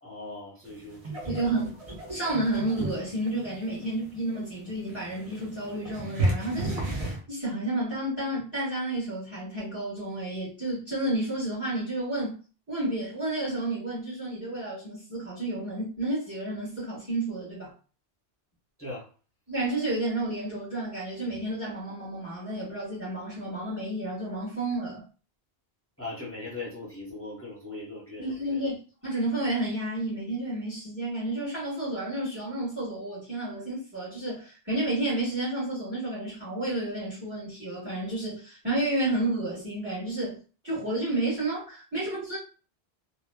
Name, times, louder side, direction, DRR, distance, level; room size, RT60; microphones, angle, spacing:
voice 1, 0.0-1.5 18.8-19.1 26.0-28.7, left 2 dB, 15° left, 0.8 m, -40 dB
sound 1, 0.7-7.2, right 2 dB, 40° right, 0.7 m, -34 dB
voice 2, 1.2-1.7 2.1-12.4 12.7-17.7 19.5-25.0 28.2-40.4 40.6-42.4, right 1 dB, 10° right, 1.4 m, -31 dB
2.8 x 2.2 x 2.2 m
omnidirectional pair, 1.1 m